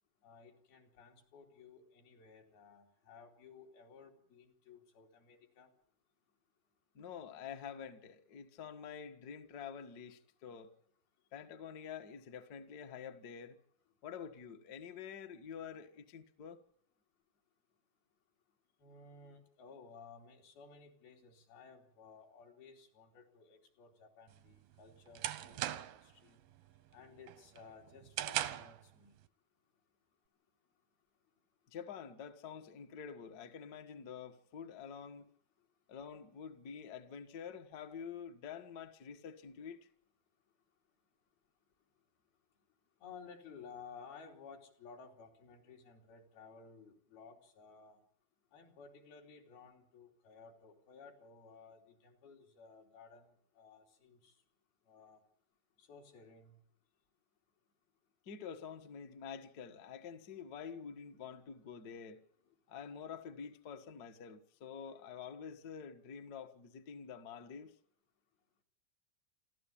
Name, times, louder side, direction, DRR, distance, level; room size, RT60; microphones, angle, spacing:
voice 1, 0.2-5.7 18.8-26.4 26.9-29.2 43.0-48.0 48.5-53.3 53.5-54.3 54.9-55.2 55.8-56.6 62.5-62.6, left 5 dB, 85° left, 4.9 m, -56 dB
voice 2, 6.9-10.7 11.3-13.6 14.0-16.6 31.7-35.3 35.9-39.8 58.2-62.2 62.7-67.7, left 7 dB, 65° left, 0.9 m, -48 dB
sound 1, 24.3-26.1 26.5-26.9 27.3-28.8, right 13 dB, 85° right, 2.9 m, -39 dB
28.5 x 12.5 x 8.7 m
omnidirectional pair, 4.2 m